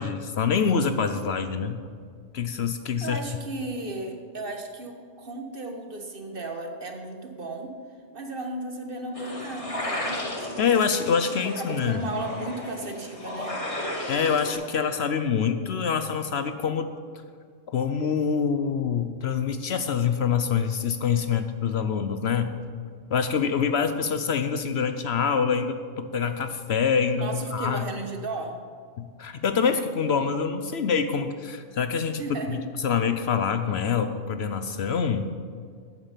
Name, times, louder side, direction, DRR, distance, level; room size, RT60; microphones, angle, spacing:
voice 1, 0.0-1.8 2.3-3.2 10.6-12.1 14.1-16.9 17.7-22.5 23.1-27.9 29.0-32.2 32.5-32.6 32.8-35.3, left 6 dB, 60° left, 9 dB, 0.8 m, -25 dB
voice 2, 3.0-7.7 8.1-10.6 11.3-13.6 27.1-28.5 32.2-32.6, right 2 dB, 45° right, 3 dB, 1.5 m, -35 dB
sound 1, 9.1-14.5, left 1 dB, 25° left, 2.0 m, -34 dB
14.0 x 8.9 x 5.7 m, 2.1 s
omnidirectional pair, 1.3 m